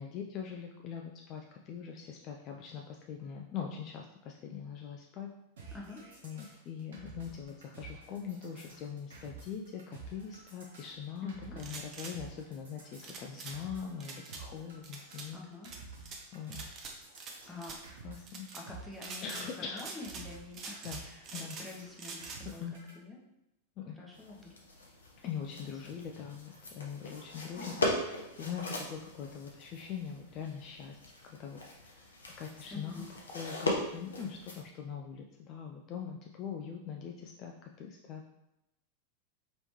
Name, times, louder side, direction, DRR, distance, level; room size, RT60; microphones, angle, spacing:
voice 1, 0.0-5.3 6.2-15.4 16.3-16.6 17.3-17.5 18.0-18.5 19.2-19.8 20.8-21.0 21.3-21.6 22.6-22.7 23.8-24.0 25.2-27.7 28.4-31.0 31.3-32.1 32.4-33.1 33.3-38.2, left 7 dB, 35° left, 1 dB, 0.3 m, -42 dB
sound 1, 5.6-22.9, right 4 dB, 60° right, 0.9 m, -51 dB
voice 2, 5.7-6.0 11.2-11.6 15.3-15.7 16.6-16.8 17.5-17.8 18.5-22.6 22.9-23.2 23.9-25.0 25.9-26.0 27.4-27.7 32.7-33.1, left 3 dB, 5° left, -4 dB, 0.8 m, -47 dB
sound 2, 11.6-12.1 13.0-13.6 14.0-14.4 14.8-15.3 15.6-16.2 16.5-17.3 17.6-17.8 18.3-18.6 19.0-19.5 19.8-20.3 20.5-21.7 22.0-22.4, right 4 dB, 35° right, 0.5 m, -44 dB
sound 3, 24.1-34.6, left 1 dB, 70° left, 0.7 m, -39 dB
3.0 x 3.0 x 3.2 m, 0.89 s
figure-of-eight pair, 90°, 0 cm